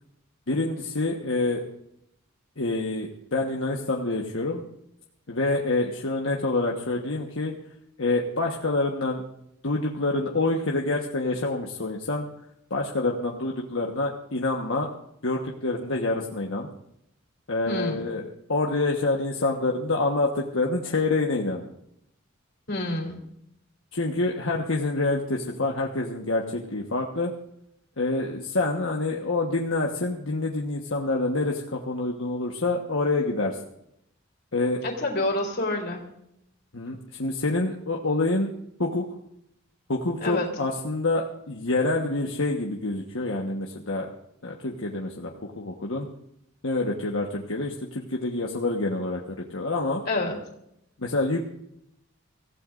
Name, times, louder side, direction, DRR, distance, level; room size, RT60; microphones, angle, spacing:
voice 1, 0.5-1.6 2.6-4.7 5.3-7.6 8.0-9.2 9.6-12.3 12.7-14.9 15.2-16.7 17.5-18.2 18.5-21.6 23.9-27.3 28.0-33.6 34.5-34.8 36.7-38.5 38.8-39.1 39.9-44.1 44.4-45.3 45.6-46.1 46.6-50.0 51.0-51.4, left 2 dB, 70° left, -1 dB, 1.3 m, -27 dB
voice 2, 17.7-18.0 22.7-23.2 34.8-36.0 40.2-40.5 50.1-50.4, left 2 dB, 50° left, 1 dB, 3.5 m, -27 dB
25.0 x 15.5 x 2.6 m, 0.76 s
head